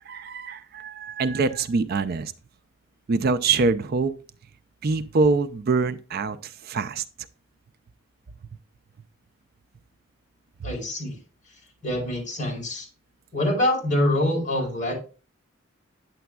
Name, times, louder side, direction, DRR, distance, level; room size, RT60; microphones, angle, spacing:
voice 1, 0.0-2.3 3.1-4.1 4.8-7.0 10.6-10.7, right 4 dB, 50° right, 0.4 m, -24 dB
voice 2, 10.6-11.2 11.8-12.9 13.3-14.9, left 1 dB, 40° left, 4.3 m, -25 dB
9.3 x 6.9 x 2.3 m
head